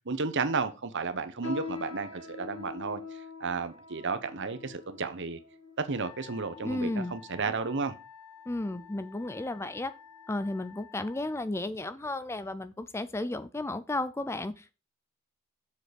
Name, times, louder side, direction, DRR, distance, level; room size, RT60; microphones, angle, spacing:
voice 1, 0.0-5.4 5.8-7.9, right 4 dB, 55° right, 1.0 m, -33 dB
sound 1, 1.4-7.1 7.8-7.9 8.6-8.9 9.3-9.5 10.2-10.3, left 4 dB, 60° left, 1.9 m, -44 dB
Wind instrument woodwind instrument, 6.0-11.5, left 8 dB, 90° left, 1.2 m, -52 dB
voice 2, 6.6-7.2 8.5-9.9 10.3-14.8, left 2 dB, 10° left, 0.4 m, -33 dB
7.3 x 6.6 x 5.2 m
head